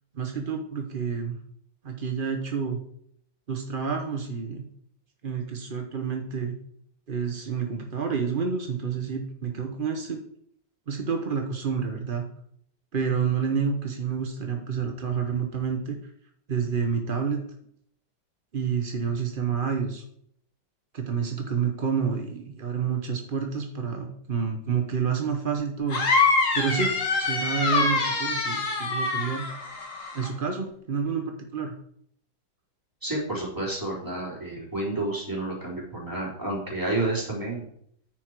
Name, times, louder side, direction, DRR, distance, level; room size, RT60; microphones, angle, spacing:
voice 1, 0.1-1.4 1.8-2.8 3.5-4.6 5.2-6.5 7.1-10.2 10.9-12.2 12.9-16.0 16.5-17.4 18.5-20.0 20.9-26.0 26.5-26.9 27.2-29.5 30.1-31.8, right 6 dB, 60° right, 3 dB, 0.5 m, -29 dB
sound 1, 25.9-30.3, left 3 dB, 40° left, 1.8 m, -25 dB
voice 2, 33.0-37.7, right 2 dB, 10° right, -5 dB, 3.5 m, -30 dB
9.7 x 5.9 x 4.7 m, 0.68 s
omnidirectional pair, 2.3 m